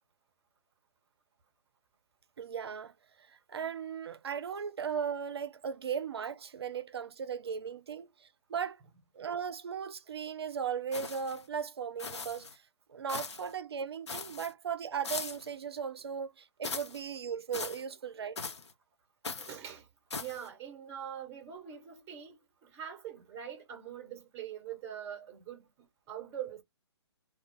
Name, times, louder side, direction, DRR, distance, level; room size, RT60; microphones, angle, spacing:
voice 1, 2.4-2.9 3.2-8.8 9.1-12.6 12.9-18.5, right 7 dB, 65° right, 0.5 m, -37 dB
sound 1, 10.9-11.4 12.0-12.5 13.1-13.5 14.1-14.5 15.0-15.5 16.6-17.0 17.5-17.8 18.4-18.7 19.2-19.6 20.1-20.5, left 4 dB, 75° left, 0.7 m, -40 dB
voice 2, 19.4-19.9 20.2-26.6, right 9 dB, 15° right, 1.0 m, -43 dB
2.3 x 2.3 x 3.4 m
figure-of-eight pair, 135°, 15 cm